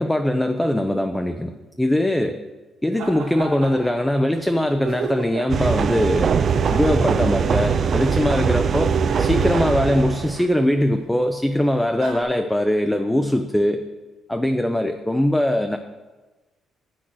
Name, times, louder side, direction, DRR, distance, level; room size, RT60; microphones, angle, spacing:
voice 1, 0.0-1.5 1.8-2.4 2.8-6.3 6.7-13.8 14.3-15.8, left 1 dB, 5° left, 6 dB, 0.6 m, -21 dB
sound 1, 3.0-4.1 4.4-4.5 4.8-5.6 6.4-7.9 8.7-10.6 11.5-11.6 12.0-12.2, right 4 dB, 85° right, 1.8 m, -32 dB
sound 2, 5.5-10.4, right 6 dB, 50° right, 0.4 m, -21 dB
8.3 x 6.3 x 6.2 m, 1.2 s
cardioid pair, 90°, 0 cm